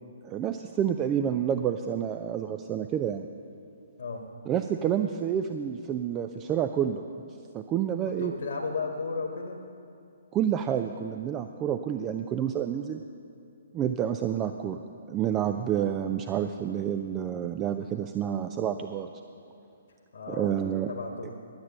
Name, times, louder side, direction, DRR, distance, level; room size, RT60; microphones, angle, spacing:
voice 1, 0.2-3.3 4.5-7.0 7.5-8.3 10.3-13.0 13.7-14.8 15.1-19.1 20.3-20.9 21.2-21.3, right 9 dB, 20° right, 7 dB, 0.3 m, -29 dB
voice 2, 8.0-9.6 20.1-20.5 20.9-21.3, left 4 dB, 55° left, 1 dB, 1.4 m, -34 dB
12.0 x 8.6 x 6.8 m, 2.6 s
figure-of-eight pair, 130°, 0 cm